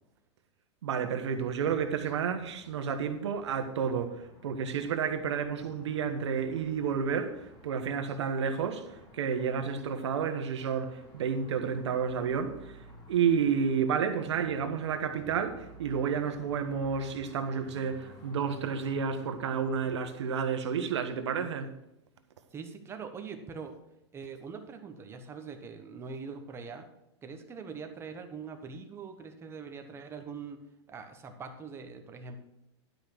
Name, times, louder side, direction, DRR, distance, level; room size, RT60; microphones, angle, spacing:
voice 1, 0.8-12.8 13.1-21.7, right 6 dB, 80° right, 1.3 m, -31 dB
sound 1, 1.3-19.9, left 1 dB, 30° left, 2.4 m, -54 dB
voice 2, 22.5-23.8 24.1-26.9 27.2-30.6 30.9-32.4, right 5 dB, 15° right, 1.1 m, -43 dB
11.5 x 5.3 x 6.2 m
supercardioid pair, 145°, 15 cm